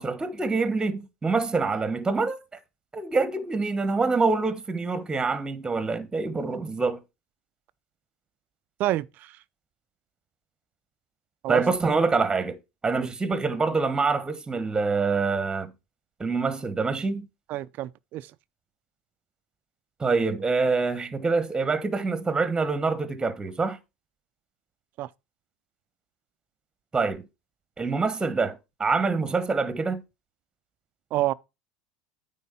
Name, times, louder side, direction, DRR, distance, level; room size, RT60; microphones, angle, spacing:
voice 1, 0.0-2.4 2.9-7.0 11.5-12.6 12.8-15.7 16.2-17.3 20.0-23.8 26.9-27.2 27.8-30.0, right 4 dB, 15° right, 1.2 m, -25 dB
voice 2, 8.8-9.4 11.4-11.6 17.5-18.3 25.0-25.1 31.1-31.3, right 15 dB, 50° right, 0.5 m, -28 dB
9.5 x 3.6 x 5.6 m
hypercardioid pair, 85°, 4 cm